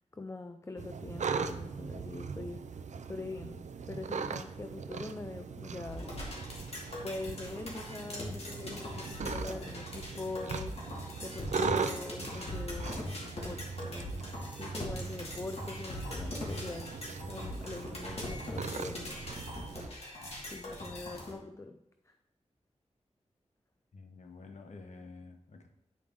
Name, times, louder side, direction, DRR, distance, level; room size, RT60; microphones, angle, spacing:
voice 1, 0.0-2.7 3.1-6.2 7.0-10.8 11.2-19.9 20.5-21.8 22.1-22.2, left 3 dB, 25° left, 7 dB, 0.4 m, -43 dB
sound 1, 0.8-19.9, right 5 dB, 80° right, 0.4 m, -40 dB
sound 2, 5.8-21.3, left 1 dB, 60° left, 2.2 m, -41 dB
voice 2, 23.9-25.7, left 3 dB, 75° left, 4 dB, 0.9 m, -50 dB
9.6 x 4.9 x 3.6 m, 0.84 s
wide cardioid pair, 90°, 12 cm